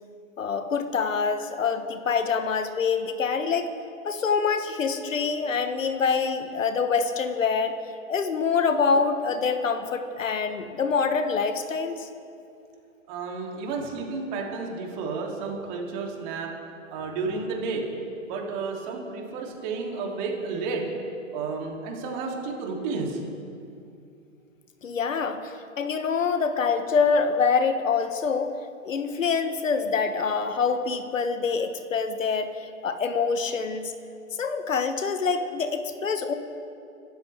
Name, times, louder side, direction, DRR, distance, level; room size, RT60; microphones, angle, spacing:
voice 1, 0.4-3.7 4.0-7.8 8.1-12.1 24.8-28.6 28.8-33.9 34.4-36.3, left 5 dB, 70° left, 9 dB, 1.3 m, -25 dB
voice 2, 13.1-16.5 16.9-17.8 18.2-20.8 21.3-23.2, right 4 dB, 35° right, 0 dB, 3.0 m, -31 dB
25.5 x 13.0 x 3.5 m, 2.5 s
figure-of-eight pair, 125°, 40 cm